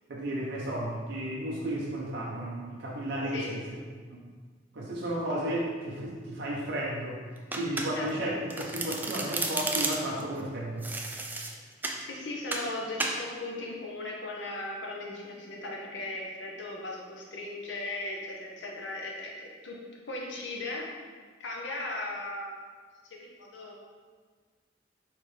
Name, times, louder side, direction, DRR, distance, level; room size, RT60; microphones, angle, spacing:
voice 1, 0.1-3.6 4.1-4.2 4.7-7.2 7.6-10.9, right 1 dB, 65° right, -4 dB, 0.6 m, -33 dB
voice 2, 3.3-3.6 7.9-8.3 12.0-19.8 20.0-20.9 21.4-22.5 23.1-23.9, left 2 dB, 75° left, -2 dB, 0.8 m, -37 dB
Domestic sounds home sounds, 7.5-8.2 8.5-10.2 10.8-12.0 12.5-12.7 13.0-13.2, right 2 dB, 10° right, 0.3 m, -32 dB
4.4 x 3.7 x 3.2 m, 1.5 s
head